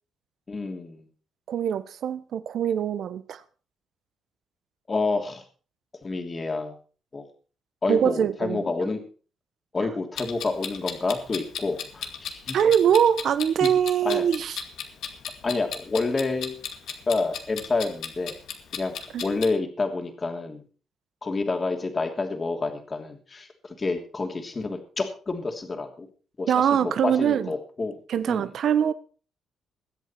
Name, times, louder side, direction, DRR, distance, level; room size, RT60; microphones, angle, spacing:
voice 1, 0.5-1.1 4.9-5.4 6.0-6.8 7.1-7.3 7.8-9.0 9.7-12.6 13.6-13.7 14.0-14.2 15.4-16.6 17.1-18.4 18.7-19.0 19.2-20.6 21.2-26.1 26.4-26.5 26.8-27.9 28.3-28.4, left 3 dB, 30° left, 3.0 m, -28 dB
voice 2, 1.5-3.4 7.9-8.6 12.5-14.6 19.1-19.2 26.5-27.5 28.1-28.9, right 8 dB, 65° right, 1.2 m, -23 dB
Clock, 10.2-19.5, left 7 dB, 75° left, 2.1 m, -36 dB
21.5 x 8.3 x 4.5 m
cardioid pair, 90°, 0 cm